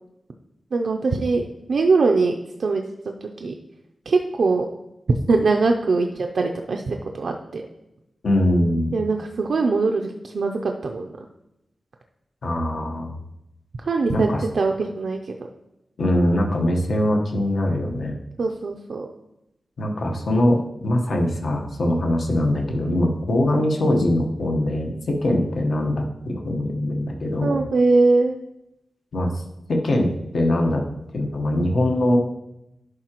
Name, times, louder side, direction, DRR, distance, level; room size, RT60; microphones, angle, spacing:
voice 1, 0.7-2.8 3.4-3.5 4.1-4.7 5.3-7.6 8.9-11.1 13.9-15.3 18.4-19.1 27.4-28.4, right 3 dB, 75° right, 3 dB, 0.5 m, -22 dB
voice 2, 8.2-8.9 12.4-13.1 14.1-14.4 16.0-18.1 19.8-20.6 20.8-27.5 29.1-29.4 29.7-30.1 30.3-30.8 31.1-32.2, left 1 dB, 70° left, 1 dB, 1.1 m, -22 dB
11.5 x 4.9 x 3.0 m, 0.87 s
wide cardioid pair, 135°, 0 cm